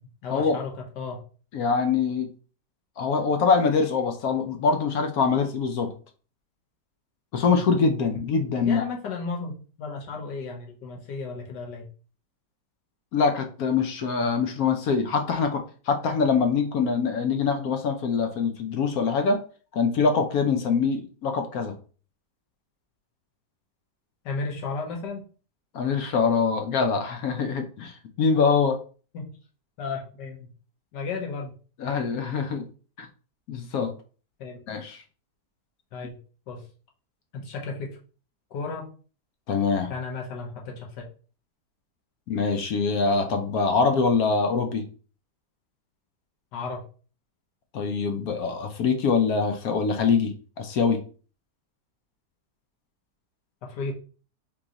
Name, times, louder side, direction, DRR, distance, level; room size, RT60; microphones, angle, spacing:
voice 1, 0.2-1.2 7.6-7.7 8.6-9.5 9.8-11.9 24.2-25.2 29.1-29.3 29.8-30.5 30.9-31.5 34.4-34.6 35.9-36.2 36.5-36.7 37.3-37.9 38.5-38.9 39.9-41.0 46.5-46.8 53.6-53.9, left 4 dB, 90° left, 0 dB, 1.7 m, -34 dB
voice 2, 1.5-2.3 3.0-5.9 7.3-8.8 13.1-19.4 19.7-21.8 25.7-28.8 31.8-32.7 33.0-33.1 33.5-33.9 34.7-35.0 39.5-39.9 42.3-44.9 47.7-51.0, left 5 dB, 65° left, 6 dB, 1.1 m, -24 dB
3.8 x 3.0 x 3.8 m, 0.38 s
omnidirectional pair, 1.8 m